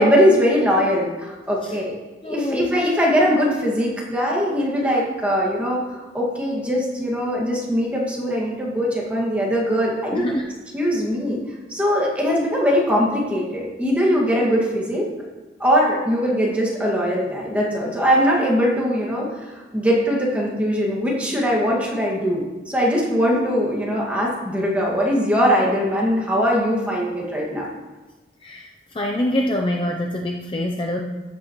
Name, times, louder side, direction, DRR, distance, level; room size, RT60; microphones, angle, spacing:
voice 1, 0.0-1.9 2.2-10.3 10.7-11.4 11.7-15.1 15.6-27.7, equal, 10° right, -4 dB, 1.9 m, -21 dB
voice 2, 2.2-2.7 10.1-10.4 28.4-28.7 28.9-31.0, left 1 dB, 30° left, 1 dB, 0.6 m, -25 dB
13.5 x 8.4 x 3.1 m, 1.2 s
head